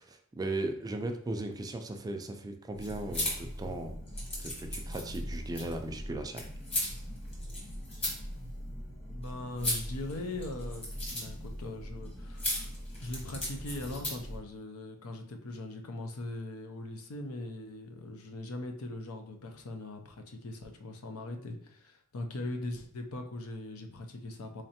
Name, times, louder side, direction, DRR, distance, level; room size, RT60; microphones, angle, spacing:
voice 1, 0.0-4.0 4.4-6.4, right 2 dB, 20° right, 5 dB, 0.3 m, -37 dB
sound 1, 2.7-14.4, left 1 dB, 30° left, 1.2 m, -38 dB
voice 2, 9.1-12.7 13.0-24.6, left 2 dB, 90° left, 4 dB, 0.6 m, -40 dB
3.7 x 3.2 x 2.8 m, 0.66 s
head